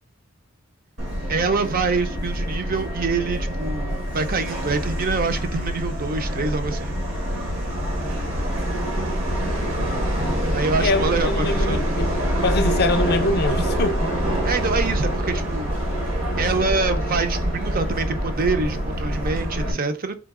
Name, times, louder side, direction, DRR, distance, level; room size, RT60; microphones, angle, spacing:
Subway metro underground, 1.0-19.7, equal, 70° right, 1.4 m, -25 dB
voice 1, 1.3-7.0 10.5-11.9 14.4-15.8 16.4-20.2, right 4 dB, 45° right, 0.6 m, -25 dB
voice 2, 10.8-11.9 12.4-14.1, left 3 dB, 50° left, 0.5 m, -23 dB
3.9 x 2.8 x 3.6 m
head